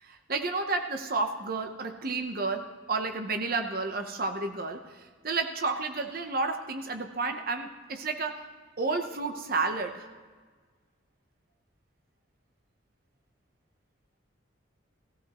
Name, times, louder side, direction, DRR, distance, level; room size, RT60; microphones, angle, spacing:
voice 1, 0.0-8.4 8.8-10.1, right 3 dB, 50° right, 6 dB, 0.8 m, -31 dB
18.5 x 14.0 x 3.0 m, 1.5 s
head